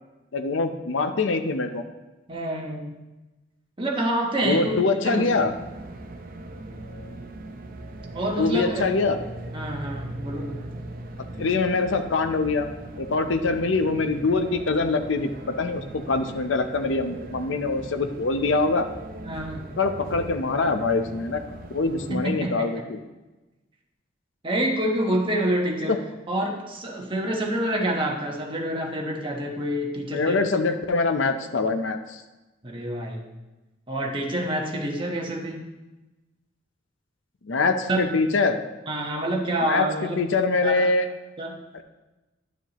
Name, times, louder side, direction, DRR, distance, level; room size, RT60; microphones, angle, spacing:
voice 1, 0.3-1.8 4.4-5.5 8.4-9.2 11.4-12.7 13.0-18.9 19.8-21.4 21.7-23.0 25.9-26.0 30.1-32.2 37.4-38.6 39.6-41.1 41.7-41.8, left 3 dB, 75° left, 8 dB, 0.6 m, -24 dB
voice 2, 2.3-2.9 3.8-4.7 5.0-5.2 8.1-8.8 9.5-10.7 19.2-19.6 22.1-22.7 24.4-26.0 26.3-30.3 32.6-33.2 33.9-35.6 37.9-38.0 38.9-40.2 40.6-40.9 41.4-41.6, right 1 dB, 25° right, 0 dB, 1.2 m, -27 dB
sound 1, 5.3-22.2, right 1 dB, 50° right, 0.7 m, -39 dB
11.0 x 7.0 x 3.0 m, 1.1 s
head